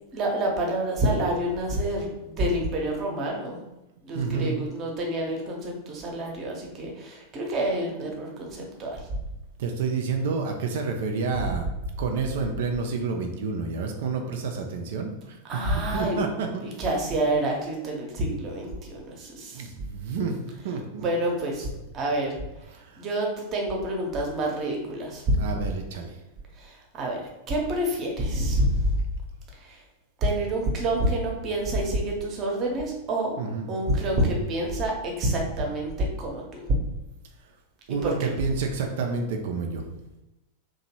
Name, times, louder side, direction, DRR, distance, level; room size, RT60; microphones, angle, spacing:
voice 1, 0.1-3.6 4.0-9.0 15.5-16.2 16.8-19.7 21.0-21.7 21.9-22.4 23.0-25.4 26.6-27.2 27.5-28.9 29.7-29.8 30.2-33.4 33.7-36.6 38.0-38.3, right 1 dB, 30° right, 0 dB, 0.7 m, -27 dB
voice 2, 4.1-4.6 9.6-11.7 12.0-15.6 15.9-16.6 19.5-20.4 20.6-21.1 22.7-23.1 25.4-26.2 33.4-33.7 37.9-39.8, right 4 dB, 55° right, 3 dB, 0.4 m, -29 dB
2.8 x 2.2 x 2.9 m, 0.94 s
figure-of-eight pair, 90°, 0 cm